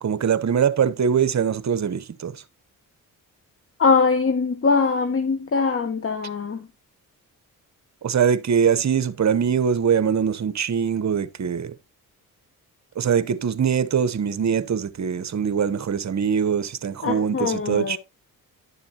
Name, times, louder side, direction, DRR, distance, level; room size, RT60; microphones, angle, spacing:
voice 1, 0.0-2.3 8.0-11.7 13.0-18.0, right 7 dB, 45° right, 1.0 m, -22 dB
voice 2, 3.8-6.7 17.0-18.0, left 4 dB, 35° left, 1.1 m, -22 dB
11.0 x 6.9 x 2.8 m
cardioid pair, 65°, 37 cm